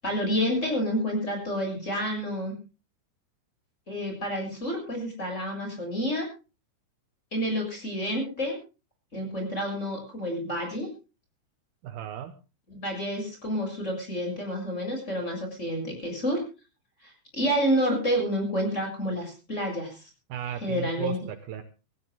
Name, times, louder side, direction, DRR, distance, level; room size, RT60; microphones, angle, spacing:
voice 1, 0.0-2.5 3.9-6.3 7.3-8.6 9.1-10.9 12.7-16.4 17.0-20.0 20.6-21.2, equal, 15° left, 2 dB, 7.3 m, -29 dB
voice 2, 11.8-12.3 20.3-21.6, right 10 dB, 85° right, 9 dB, 2.1 m, -34 dB
26.0 x 16.0 x 2.2 m, 0.32 s
omnidirectional pair, 5.6 m